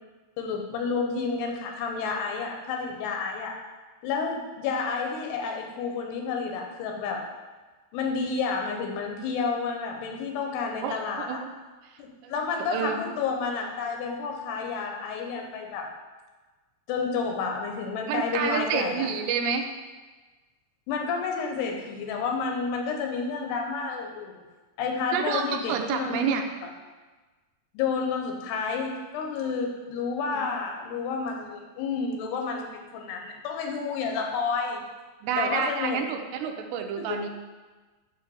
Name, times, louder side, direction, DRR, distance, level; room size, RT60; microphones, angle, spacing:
voice 1, 0.4-3.6 4.0-7.2 7.9-11.4 12.0-15.9 16.9-19.1 20.9-24.4 24.8-26.3 27.7-34.8 35.4-36.0 37.0-37.2, left 5 dB, 80° left, 2 dB, 2.8 m, -30 dB
voice 2, 10.8-11.5 12.2-12.3 12.6-13.0 18.1-19.7 25.1-26.4 30.3-30.5 35.2-37.3, right 7 dB, 85° right, 4 dB, 2.9 m, -29 dB
9.6 x 3.4 x 6.9 m, 1.3 s
omnidirectional pair, 5.0 m